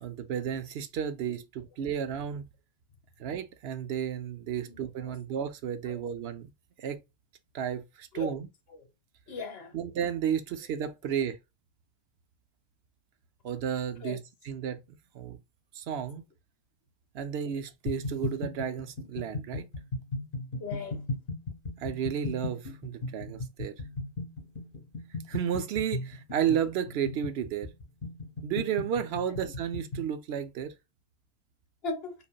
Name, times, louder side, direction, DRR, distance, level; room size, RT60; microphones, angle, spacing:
voice 1, 0.0-2.5 3.2-6.5 6.8-7.0 7.5-8.5 9.7-11.4 13.4-14.8 15.1-15.4 15.7-16.2 17.1-19.7 21.8-23.7 25.3-27.7 28.4-30.7, right 8 dB, 70° right, 0.8 m, -32 dB
voice 2, 4.6-5.1 5.8-6.0 8.1-8.3 8.7-8.9 9.3-9.8 14.0-14.2 20.6-21.0 29.3-29.4 31.8-32.1, left 4 dB, 65° left, 1.2 m, -38 dB
sound 1, 17.9-30.1, left 2 dB, 40° left, 2.4 m, -37 dB
5.1 x 2.5 x 2.2 m
omnidirectional pair, 1.1 m